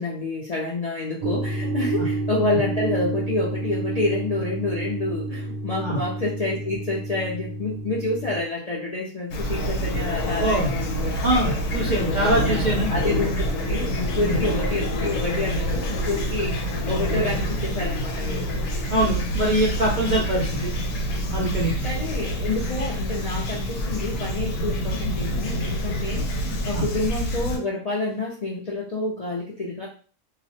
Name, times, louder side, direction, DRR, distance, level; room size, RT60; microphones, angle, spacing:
voice 1, 0.0-11.2 11.4-11.6 12.4-18.4 21.8-29.9, left 2 dB, 55° left, -6 dB, 0.4 m, -28 dB
sound 1, 1.2-8.4, right 2 dB, 85° right, 1.0 m, -30 dB
Fowl / Chirp tweet, 9.3-27.6, equal, 90° left, 1.0 m, -26 dB
voice 2, 10.4-10.7 11.2-12.9 14.2-14.4 18.9-20.7 21.3-21.7 26.7-26.8, right 1 dB, 55° right, -3 dB, 0.5 m, -23 dB
2.4 x 2.0 x 2.6 m, 0.40 s
omnidirectional pair, 1.3 m